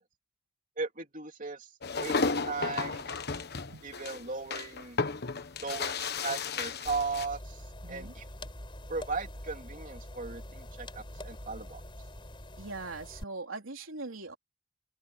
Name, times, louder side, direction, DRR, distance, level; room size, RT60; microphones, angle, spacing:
voice 1, 0.8-3.1 3.8-5.0 5.6-8.2 8.9-11.8, right 4 dB, 40° right, 3.1 m, -37 dB
sound 1, 1.8-7.3, left 4 dB, 50° left, 1.3 m, -33 dB
sound 2, 6.8-13.2, left 1 dB, 25° left, 4.9 m, -45 dB
voice 2, 7.8-8.1 12.6-14.4, right 3 dB, 75° right, 3.5 m, -41 dB
open air
head